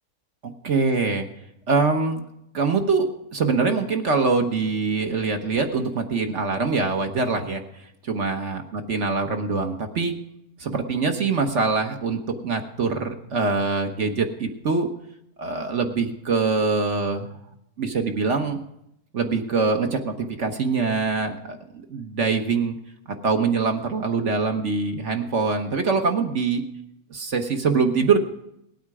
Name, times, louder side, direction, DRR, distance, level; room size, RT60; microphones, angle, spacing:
voice 1, 0.4-1.3 1.7-2.2 2.5-7.6 8.0-10.1 10.6-14.9 15.4-17.3 17.8-18.6 19.1-21.6 21.9-22.7 23.2-26.6 27.1-28.2, right 4 dB, 50° right, 5 dB, 1.4 m, -24 dB
18.0 x 8.8 x 4.9 m, 0.78 s
omnidirectional pair, 1.6 m